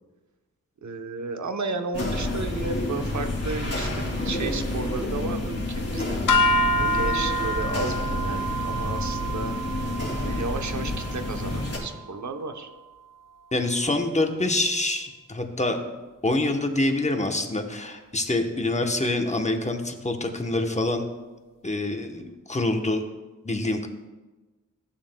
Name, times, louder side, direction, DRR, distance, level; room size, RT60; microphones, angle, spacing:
voice 1, 0.8-6.2 6.7-9.6 10.2-12.7, right 3 dB, 60° right, 7 dB, 0.8 m, -33 dB
sound 1, 1.9-11.8, left 1 dB, 45° left, 2.5 m, -29 dB
sound 2, 6.3-12.6, equal, 75° left, 0.5 m, -28 dB
voice 2, 13.5-15.8 16.2-21.1 21.6-23.0 23.4-23.9, left 2 dB, 20° left, 4 dB, 0.9 m, -26 dB
14.0 x 7.0 x 2.2 m, 1.2 s
wide cardioid pair, 50°, 32 cm